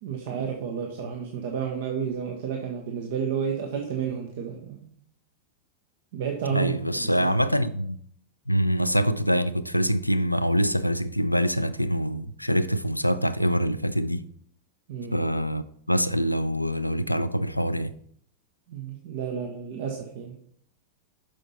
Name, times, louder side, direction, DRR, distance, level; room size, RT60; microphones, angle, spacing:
voice 1, 0.0-4.9 6.1-7.3 14.9-15.2 18.7-20.3, right 7 dB, 55° right, 0.9 m, -31 dB
voice 2, 6.5-8.0 8.5-14.2 15.1-17.9, equal, 90° left, 0.4 m, -25 dB
6.3 x 5.8 x 4.2 m
figure-of-eight pair, 90°, 0 cm